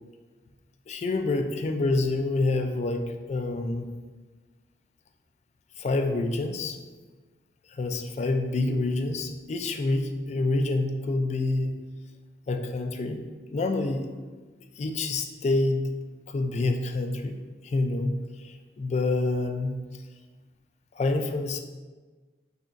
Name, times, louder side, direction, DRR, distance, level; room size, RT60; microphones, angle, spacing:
voice 1, 0.9-3.9 5.8-6.8 7.7-11.8 12.5-13.2 13.5-14.1 14.8-15.9 16.3-19.8 20.9-21.6, left 2 dB, 40° left, 6 dB, 0.3 m, -27 dB
6.1 x 2.9 x 2.5 m, 1.4 s
head